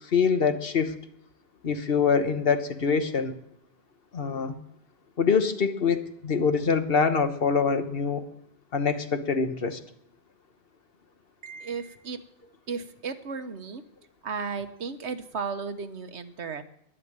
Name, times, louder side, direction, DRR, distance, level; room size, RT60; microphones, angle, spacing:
voice 1, 0.1-1.0 1.6-3.3 4.1-4.5 5.2-8.2 8.7-9.8, left 5 dB, 60° left, 9 dB, 1.3 m, -24 dB
voice 2, 11.4-12.2 12.7-13.8 14.2-16.6, right 5 dB, 80° right, 9 dB, 1.4 m, -34 dB
11.5 x 11.0 x 8.8 m, 0.72 s
omnidirectional pair, 1.1 m